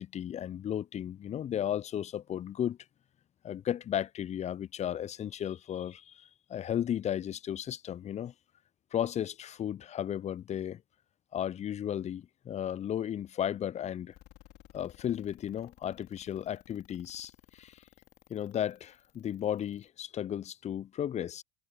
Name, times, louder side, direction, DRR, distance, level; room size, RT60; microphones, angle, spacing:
voice 1, 0.0-2.8 3.4-8.3 8.9-10.8 11.3-14.1 14.7-17.8 18.3-21.4, left 10 dB, 20° left, 0.5 m, -34 dB
sound 1, 14.1-19.9, left 17 dB, 45° left, 2.8 m, -58 dB
hypercardioid pair, 90°, 32 cm